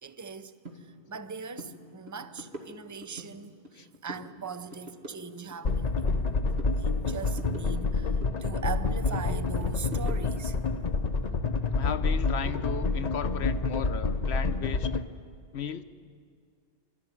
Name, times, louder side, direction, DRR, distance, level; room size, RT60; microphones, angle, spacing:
voice 1, 0.0-6.1 6.7-10.6, right 5 dB, 20° right, 12 dB, 0.5 m, -41 dB
sound 1, 0.6-0.8 1.1-1.3 1.5-1.7 2.1-3.3 3.6-4.3 4.6-6.3 6.6-8.4 8.7-10.5, equal, 70° right, 2.7 m, -44 dB
sound 2, 5.6-15.0, left 3 dB, 40° left, 0.9 m, -28 dB
voice 2, 11.8-15.0 15.5-15.8, left 7 dB, 75° left, 11 dB, 1.1 m, -35 dB
25.0 x 13.5 x 9.8 m, 2.1 s
omnidirectional pair, 1.1 m